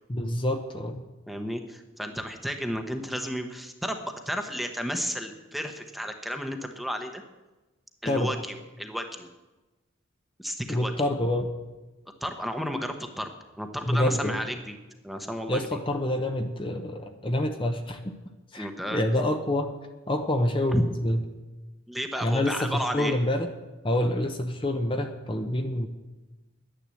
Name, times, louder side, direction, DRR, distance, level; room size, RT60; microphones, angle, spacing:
voice 1, 0.1-1.0 8.1-8.3 10.7-11.5 13.8-14.4 15.5-18.0 18.5-19.7 20.1-21.2 22.2-23.5 23.8-25.9, left 1 dB, 25° left, 5 dB, 0.8 m, -27 dB
voice 2, 1.3-7.2 8.0-9.3 10.4-10.9 12.2-13.3 13.6-14.8 15.0-15.6 18.6-19.0 20.7-20.8 21.9-23.2, equal, ahead, 5 dB, 0.9 m, -32 dB
10.5 x 10.0 x 7.6 m, 1.1 s
head